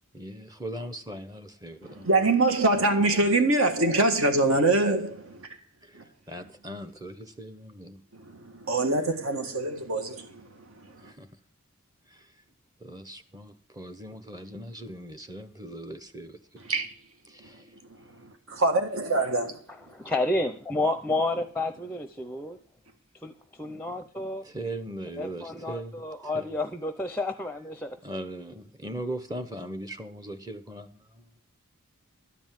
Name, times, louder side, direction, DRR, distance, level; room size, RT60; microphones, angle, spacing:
voice 1, 0.1-2.1 3.0-3.4 5.8-8.0 11.0-11.3 12.1-12.3 12.8-16.6 17.3-17.7 24.4-26.1 26.3-26.5 28.0-31.3, right 1 dB, 15° right, 1.0 m, -39 dB
voice 2, 1.8-5.6 5.9-6.0 8.1-11.1 16.6-16.9 17.4-19.6, right 2 dB, 65° right, 1.6 m, -25 dB
voice 3, 19.9-22.6 23.2-23.3 23.6-24.5 25.2-28.0, left 2 dB, 5° left, 0.7 m, -30 dB
13.0 x 5.4 x 9.2 m
head